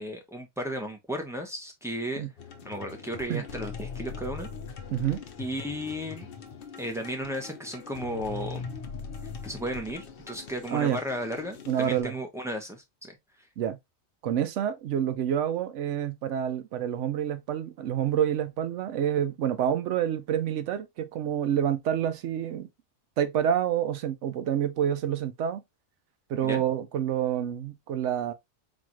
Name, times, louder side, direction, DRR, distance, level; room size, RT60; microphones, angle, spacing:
voice 1, 0.0-2.3 2.6-4.5 5.4-6.3 6.8-8.7 9.4-13.2 26.4-26.6, equal, 5° right, 0.7 m, -34 dB
sound 1, 2.4-12.0, left 5 dB, 60° left, 0.8 m, -41 dB
voice 2, 4.9-5.2 10.7-11.0 11.7-12.2 13.6-13.8 14.2-22.7 23.2-25.6 26.3-28.3, right 9 dB, 85° right, 0.9 m, -28 dB
4.1 x 2.5 x 2.9 m
omnidirectional pair, 1.2 m